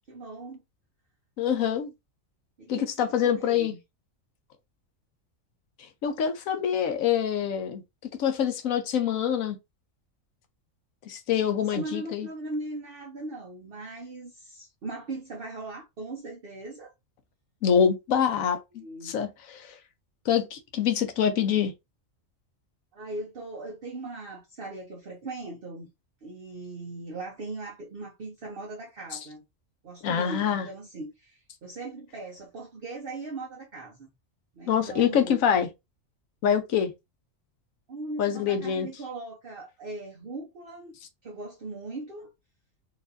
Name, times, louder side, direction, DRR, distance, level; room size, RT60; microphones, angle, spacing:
voice 1, 0.1-0.6 2.6-3.8 11.6-16.9 18.8-19.2 22.9-25.9 26.2-29.4 29.8-34.1 34.5-35.5 37.9-41.0 41.2-42.3, right 2 dB, 50° right, 1.0 m, -39 dB
voice 2, 1.4-1.9 2.7-3.7 6.0-7.8 8.2-9.6 11.1-12.3 17.6-19.7 20.3-21.7 30.0-30.7 34.7-35.7 36.4-36.9 38.2-38.9, left 8 dB, 85° left, 1.2 m, -25 dB
4.0 x 2.6 x 2.6 m
omnidirectional pair, 1.4 m